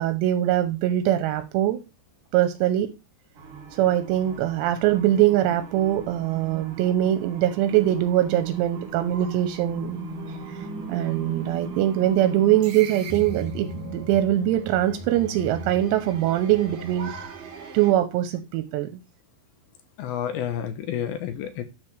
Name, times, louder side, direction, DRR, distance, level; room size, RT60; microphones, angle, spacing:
voice 1, 0.0-1.8 2.3-2.9 3.8-10.0 10.3-10.6 10.9-19.0, right 12 dB, 90° right, 2.9 m, -23 dB
sound 1, 3.3-17.9, right 5 dB, 55° right, 2.0 m, -38 dB
sound 2, 8.8-15.1, left 3 dB, 25° left, 4.1 m, -41 dB
voice 2, 20.0-21.6, left 9 dB, 75° left, 2.3 m, -30 dB
12.0 x 4.8 x 3.3 m
omnidirectional pair, 5.1 m